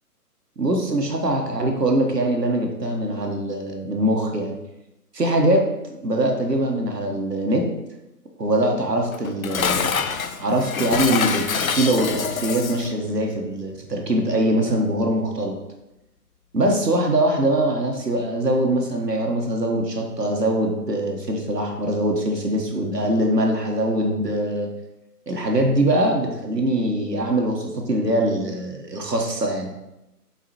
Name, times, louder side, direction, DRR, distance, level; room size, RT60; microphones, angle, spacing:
voice 1, 0.6-4.5 5.1-5.6 6.0-7.6 8.4-10.0 10.4-15.6 16.5-24.7 25.3-29.7, right 1 dB, 80° right, 1 dB, 1.4 m, -22 dB
Dishes pots and pans, 9.1-12.9, left 6 dB, 60° left, 0.6 m, -26 dB
7.3 x 4.8 x 3.0 m, 0.92 s
figure-of-eight pair, 140°, 48 cm